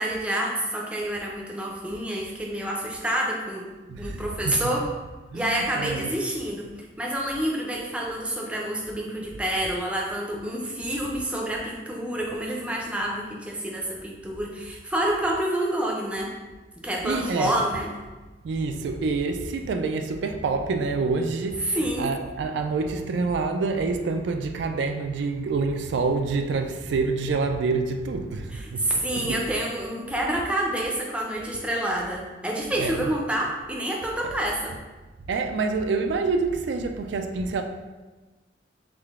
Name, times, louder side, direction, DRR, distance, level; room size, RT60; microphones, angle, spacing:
voice 1, 0.0-3.7 4.0-4.8 5.3-6.7 7.0-16.3 16.8-17.9 21.7-22.1 28.5-34.7, right 1 dB, 5° right, 0.5 m, -28 dB
voice 2, 3.9-4.7 5.3-6.1 17.0-17.6 18.4-28.8 29.1-29.5 32.8-33.1 35.2-37.6, right 4 dB, 75° right, 0.3 m, -27 dB
3.7 x 3.2 x 3.5 m
head